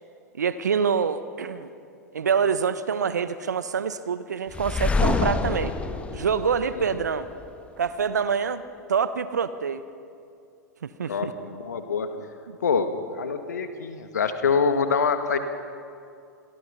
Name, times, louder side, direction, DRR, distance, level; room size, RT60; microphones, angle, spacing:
voice 1, 0.3-1.7 2.1-5.7 6.1-7.3 7.8-8.6 8.9-9.8 10.8-11.3 12.5-12.6, right 6 dB, 70° right, 13 dB, 1.2 m, -26 dB
sound 1, 4.5-7.5, left 4 dB, 10° left, 1.5 m, -27 dB
voice 2, 11.1-12.1 12.6-15.4, left 5 dB, 70° left, 8 dB, 2.1 m, -25 dB
28.0 x 22.0 x 5.7 m, 2.5 s
figure-of-eight pair, 95°, 9 cm